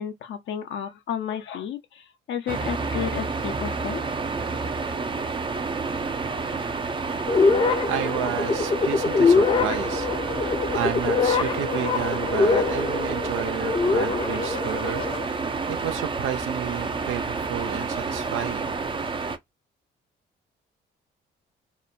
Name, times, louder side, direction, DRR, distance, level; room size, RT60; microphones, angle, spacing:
voice 1, 0.0-4.0, left 8 dB, 70° left, 0.6 m, -32 dB
sound 1, 2.5-19.4, right 4 dB, 25° right, 0.4 m, -29 dB
sound 2, 7.3-15.3, left 4 dB, 25° left, 0.5 m, -24 dB
voice 2, 7.9-10.1 10.4-18.7, right 10 dB, 85° right, 0.5 m, -32 dB
2.8 x 2.2 x 2.3 m
cardioid pair, 90°, 20 cm